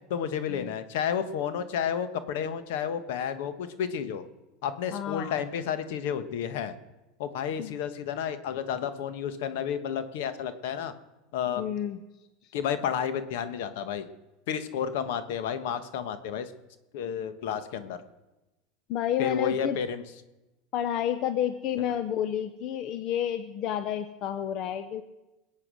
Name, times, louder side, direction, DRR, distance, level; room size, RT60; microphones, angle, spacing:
voice 1, 0.1-4.2 4.6-6.7 7.2-10.9 11.3-11.6 12.5-14.1 14.5-16.5 16.9-18.0 19.2-20.0, left 8 dB, 75° left, 11 dB, 1.4 m, -31 dB
voice 2, 4.9-5.4 7.6-7.8 11.6-12.0 18.9-19.8 20.7-25.0, left 10 dB, 45° left, 11 dB, 0.8 m, -30 dB
21.0 x 8.3 x 6.4 m, 1.0 s
supercardioid pair, 135°, 0 cm